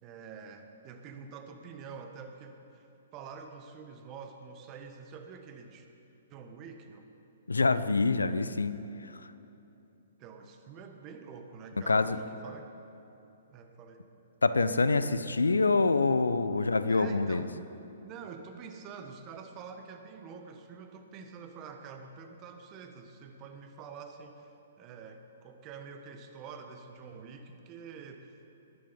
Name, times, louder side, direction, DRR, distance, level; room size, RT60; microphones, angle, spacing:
voice 1, 0.0-2.8 3.1-5.9 6.3-7.1 10.2-12.7 13.5-14.0 16.6-17.5 18.0-24.5 24.8-28.4, right 5 dB, 30° right, 6 dB, 1.5 m, -47 dB
voice 2, 7.5-8.7 11.9-12.2 14.4-17.5, left 3 dB, 80° left, 13 dB, 0.7 m, -26 dB
19.5 x 10.5 x 5.5 m, 3.0 s
figure-of-eight pair, 120°, 0 cm